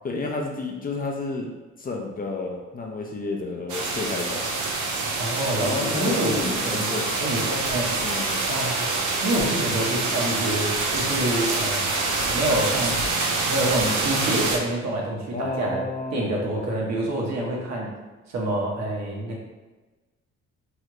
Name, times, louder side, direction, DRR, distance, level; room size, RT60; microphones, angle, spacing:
voice 1, 0.0-1.5 1.8-4.4 5.6-6.6 6.9-7.1 8.0-8.4 15.3-16.3, left 3 dB, 30° left, 0 dB, 0.5 m, -30 dB
sound 1, 3.7-14.6, right 3 dB, 85° right, 0.6 m, -26 dB
voice 2, 5.2-7.9 8.5-8.9 9.2-11.9 12.3-13.0 13.5-17.9 18.3-19.4, right 1 dB, 60° right, -2 dB, 1.0 m, -27 dB
3.2 x 2.4 x 2.9 m, 1.2 s
cardioid pair, 90°, 30 cm